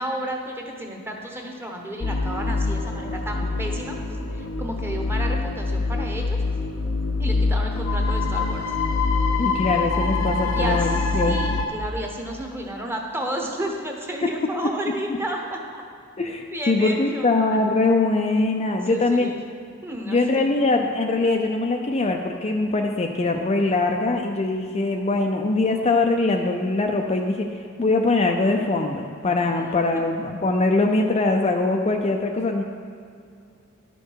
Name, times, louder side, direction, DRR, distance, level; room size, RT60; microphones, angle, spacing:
voice 1, 0.0-4.0 4.3-6.4 7.2-8.6 10.5-15.8 16.5-17.6 18.9-19.4 19.8-20.2 29.6-30.0, right 1 dB, 10° right, 1 dB, 1.0 m, -32 dB
sound 1, 2.0-11.7, left 3 dB, 70° left, 0.8 m, -24 dB
voice 2, 9.4-11.4 14.2-14.3 16.2-19.3 20.1-32.6, left 2 dB, 30° left, 2 dB, 0.5 m, -22 dB
11.5 x 6.6 x 4.6 m, 2.4 s
head